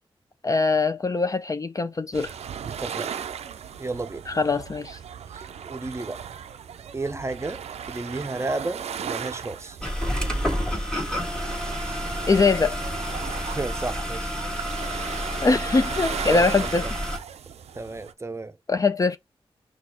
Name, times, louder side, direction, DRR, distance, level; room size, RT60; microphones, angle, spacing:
voice 1, 0.4-2.3 4.3-5.0 12.3-12.8 15.4-16.9 18.7-19.2, left 4 dB, 30° left, 0.4 m, -22 dB
sound 1, 2.1-18.1, right 8 dB, 85° right, 0.4 m, -37 dB
voice 2, 2.6-3.1 3.8-4.2 5.3-6.3 6.9-7.6 7.9-9.8 13.5-14.3 16.3-16.4 16.8-16.9 17.7-18.6, right 2 dB, 25° right, 0.5 m, -32 dB
sound 2, 9.8-17.2, equal, 5° left, 1.5 m, -29 dB
5.9 x 2.3 x 2.8 m
cardioid pair, 55°, 11 cm